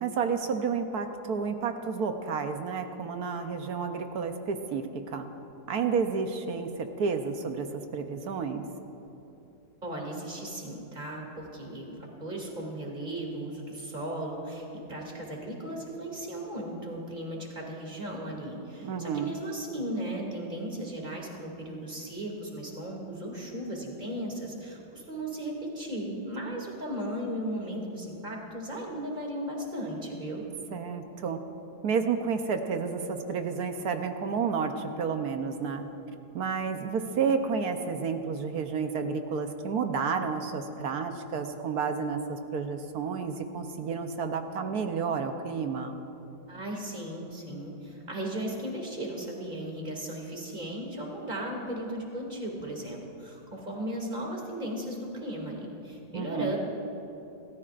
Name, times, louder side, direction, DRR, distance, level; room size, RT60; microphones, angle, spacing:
voice 1, 0.0-5.2 5.7-8.6 18.8-19.3 30.7-31.4 31.8-35.8 36.3-46.0 56.1-56.6, right 5 dB, 65° right, 6 dB, 1.2 m, -31 dB
voice 2, 9.8-11.9 12.2-30.4 46.5-56.6, right 1 dB, 25° right, -1 dB, 2.6 m, -36 dB
28.0 x 14.0 x 2.5 m, 2.9 s
omnidirectional pair, 1.9 m